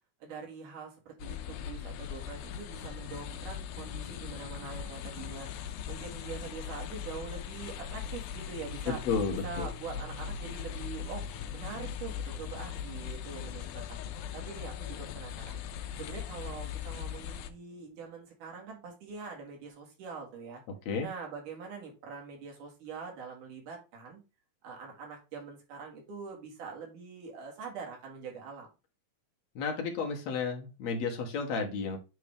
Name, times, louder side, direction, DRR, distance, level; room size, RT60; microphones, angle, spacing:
voice 1, 0.2-5.5 5.9-9.0 9.4-11.2 11.5-14.0 14.3-15.6 16.0-20.6 21.0-24.2 24.6-28.7, right 5 dB, 85° right, 0 dB, 3.5 m, -44 dB
sound 1, 1.2-17.5, left 8 dB, 85° left, 2.1 m, -40 dB
voice 2, 8.9-9.7 20.9-21.1 29.6-32.0, left 5 dB, 65° left, 2 dB, 2.3 m, -32 dB
8.1 x 3.4 x 3.4 m, 0.29 s
omnidirectional pair, 3.5 m